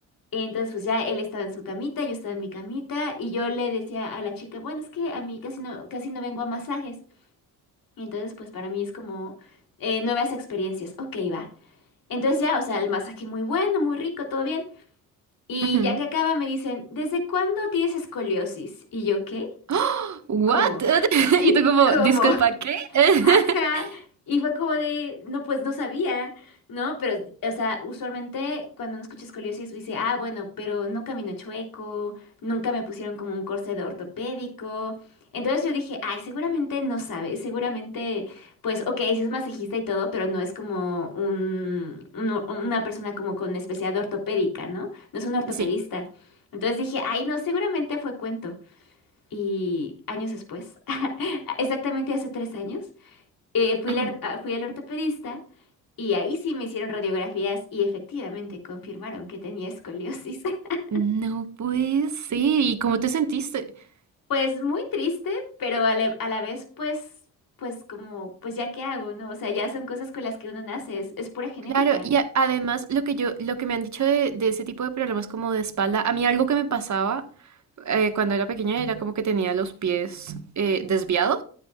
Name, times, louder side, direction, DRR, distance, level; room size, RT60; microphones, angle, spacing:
voice 1, 0.3-6.9 8.0-9.3 9.8-11.5 12.1-14.7 15.5-19.5 20.5-21.6 21.9-22.4 23.2-23.9 24.3-34.9 35.3-46.0 46.5-48.5 49.3-53.2 53.5-55.4 56.0-60.8 64.3-67.1 67.6-72.1, left 3 dB, 55° left, 3.4 m, -28 dB
voice 2, 15.6-16.0 19.7-23.6 45.6-45.7 53.9-54.1 60.9-63.7 71.7-77.2 77.8-81.4, right 6 dB, 45° right, 1.5 m, -23 dB
12.0 x 9.0 x 2.4 m
supercardioid pair, 60°, 39 cm